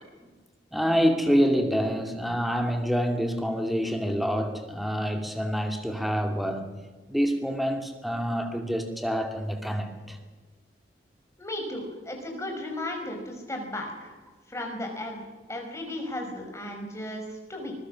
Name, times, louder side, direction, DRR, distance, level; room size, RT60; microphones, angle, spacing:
voice 1, 0.7-6.7 7.1-10.2, equal, ahead, 5 dB, 2.3 m, -27 dB
voice 2, 11.4-14.2 14.5-17.7, left 1 dB, 15° left, 2 dB, 5.1 m, -35 dB
24.5 x 21.5 x 6.3 m, 1.4 s
head